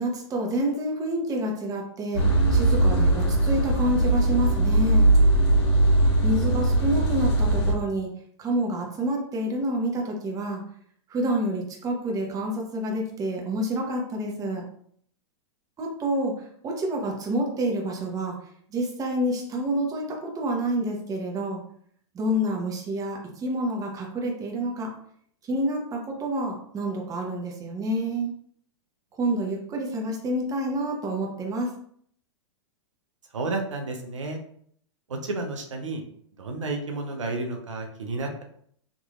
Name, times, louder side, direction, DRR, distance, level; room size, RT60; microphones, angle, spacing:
voice 1, 0.0-2.2 2.5-5.0 6.2-8.1 8.4-10.6 11.1-14.6 15.8-18.4 18.7-21.6 22.1-24.9 25.4-28.3 29.2-31.7, right 1 dB, 25° right, 0 dB, 1.0 m, -28 dB
sound 1, 2.1-7.7, right 2 dB, 60° left, 1.3 m, -20 dB
voice 2, 33.3-34.4 35.1-36.0 36.4-38.4, right 2 dB, 90° right, 3 dB, 0.7 m, -31 dB
3.7 x 3.0 x 2.4 m, 0.63 s
hypercardioid pair, 110°, 15 cm